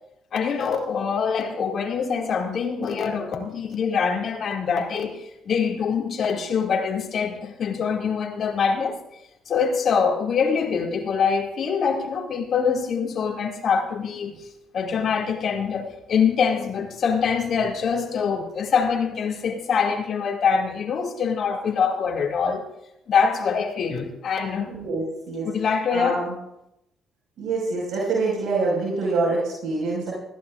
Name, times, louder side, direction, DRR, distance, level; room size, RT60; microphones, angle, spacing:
voice 1, 0.3-9.0 9.5-14.5 14.7-22.6 23.1-24.7 25.4-26.3, left 6 dB, 55° left, 1 dB, 2.3 m, -24 dB
voice 2, 24.7-25.5 25.9-26.3 27.4-30.1, right 3 dB, 80° right, -4 dB, 5.2 m, -25 dB
20.0 x 15.5 x 2.5 m, 0.85 s
cardioid pair, 95°, 0 cm